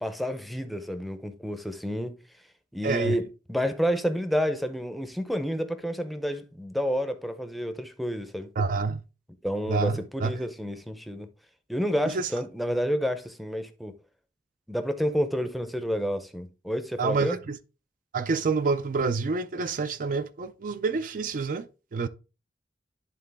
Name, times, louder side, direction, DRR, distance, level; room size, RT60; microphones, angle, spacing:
voice 1, 0.0-2.1 2.7-3.2 3.5-8.5 9.4-11.3 11.7-13.9 14.7-17.4, equal, ahead, 0.6 m, -29 dB
voice 2, 2.8-3.2 8.6-9.0 9.7-10.3 12.0-12.3 17.0-17.6 18.1-21.7 21.9-22.1, right 4 dB, 50° right, 0.4 m, -27 dB
11.0 x 3.7 x 3.4 m
head